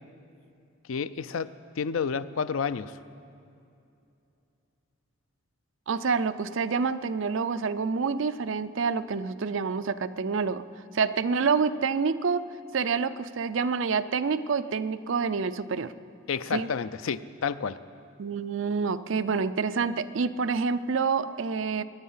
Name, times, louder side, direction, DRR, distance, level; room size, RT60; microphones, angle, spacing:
voice 1, 0.9-2.9 16.3-17.8, left 6 dB, 85° left, 14 dB, 0.5 m, -30 dB
voice 2, 5.9-10.6 10.9-12.5 12.7-15.9 16.5-16.7 18.2-21.8, right 5 dB, 65° right, 12 dB, 0.5 m, -27 dB
23.5 x 10.0 x 5.6 m, 2.6 s
head